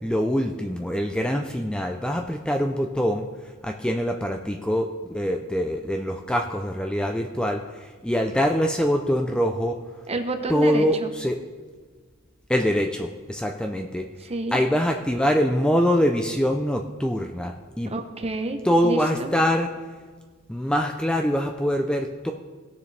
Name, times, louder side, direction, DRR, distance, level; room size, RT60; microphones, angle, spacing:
voice 1, 0.0-3.3 3.6-9.8 10.5-11.4 12.5-14.1 14.5-17.9 18.6-19.7 20.5-22.3, equal, 5° left, 3 dB, 0.4 m, -24 dB
voice 2, 10.1-11.1 14.2-14.6 17.9-19.3, right 2 dB, 30° right, 6 dB, 0.8 m, -29 dB
17.5 x 6.8 x 3.3 m, 1.4 s
head